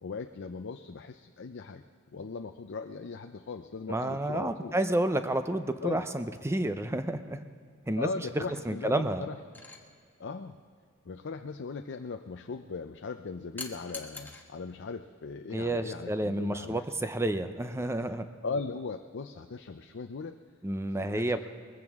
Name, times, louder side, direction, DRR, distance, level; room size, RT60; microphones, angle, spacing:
voice 1, 0.0-1.8 2.1-4.7 5.8-6.1 8.0-9.4 10.2-10.6 11.1-16.8 18.1-20.4 21.0-21.4, left 4 dB, 60° left, 6 dB, 0.5 m, -39 dB
voice 2, 3.9-7.5 7.9-8.1 8.3-9.3 15.5-18.3 20.6-21.4, right 1 dB, 15° right, 9 dB, 0.6 m, -30 dB
sound 1, 9.5-9.8 13.6-14.5 15.8-16.0, left 3 dB, 10° left, 1.2 m, -43 dB
21.0 x 15.0 x 3.6 m, 2.1 s
head